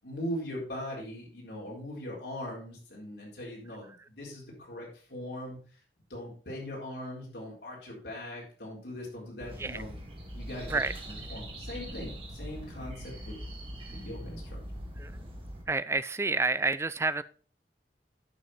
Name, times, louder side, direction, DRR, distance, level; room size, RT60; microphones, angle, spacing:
voice 1, 0.0-5.6 6.1-9.9 10.3-10.8 11.1-13.3 13.9-14.6, left 1 dB, 70° left, -3 dB, 4.2 m, -40 dB
sound 1, 9.4-15.6, equal, 30° right, 2.2 m, -42 dB
voice 2, 15.7-17.2, right 3 dB, 15° right, 16 dB, 0.3 m, -29 dB
11.0 x 6.0 x 4.3 m, 0.39 s
head